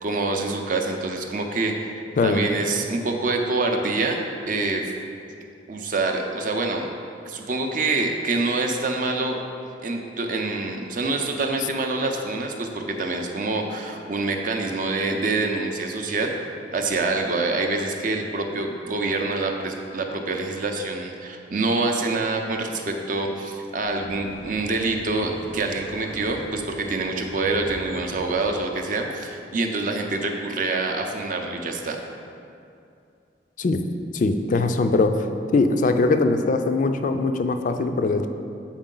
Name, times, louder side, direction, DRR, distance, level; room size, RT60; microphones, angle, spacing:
voice 1, 0.0-4.2 4.5-4.9 5.7-6.9 7.3-9.4 9.8-16.3 16.7-32.0, right 3 dB, 45° right, 3 dB, 0.5 m, -26 dB
voice 2, 2.2-2.5 33.6-33.8 34.1-35.3 35.5-38.3, left 3 dB, 45° left, 8 dB, 0.3 m, -21 dB
sound 1, 23.7-28.7, equal, 80° right, 0.8 m, -42 dB
7.2 x 4.5 x 3.8 m, 2.5 s
head